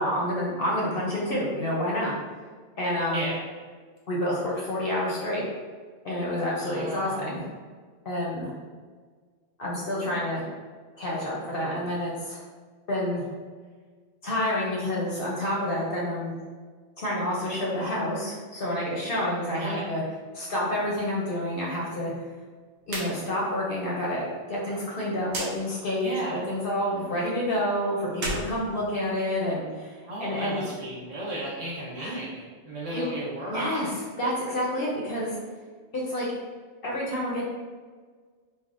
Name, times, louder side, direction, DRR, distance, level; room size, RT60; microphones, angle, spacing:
voice 1, 0.0-2.1 2.8-3.3 4.1-5.4 6.0-7.4 8.1-8.5 9.6-10.4 11.0-12.4 12.9-13.2 14.2-16.3 17.0-20.0 20.3-22.1 22.9-26.1 26.5-30.7 32.0-32.2 32.9-33.1 33.5-33.9 34.2-35.4 35.9-36.3 36.8-37.4, left 1 dB, 55° left, -5 dB, 0.7 m, -28 dB
voice 2, 3.1-3.4 6.6-7.4 19.5-19.8 26.0-26.4 30.1-33.7, right 1 dB, 75° right, -6 dB, 1.3 m, -34 dB
sound 1, 22.8-23.1 23.4-23.5 25.3-25.5 28.1-29.4, right 2 dB, 60° right, 0.8 m, -33 dB
3.3 x 2.1 x 2.4 m, 1.5 s
omnidirectional pair, 1.3 m